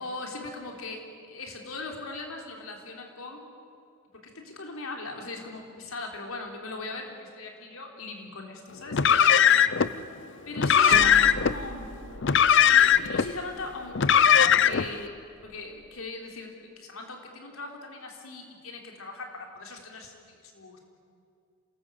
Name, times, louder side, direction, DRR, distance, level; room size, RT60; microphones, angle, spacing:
voice 1, 0.0-3.5 4.2-9.7 10.5-11.9 12.6-15.1 15.4-20.8, left 3 dB, 80° left, 2 dB, 3.7 m, -39 dB
Car, 8.9-9.9 10.6-11.5 12.2-13.3 13.9-14.9, left 8 dB, 60° left, 0.6 m, -19 dB
sound 1, 10.7-15.9, right 3 dB, 75° right, 1.1 m, -39 dB
27.0 x 19.0 x 8.3 m, 2.4 s
head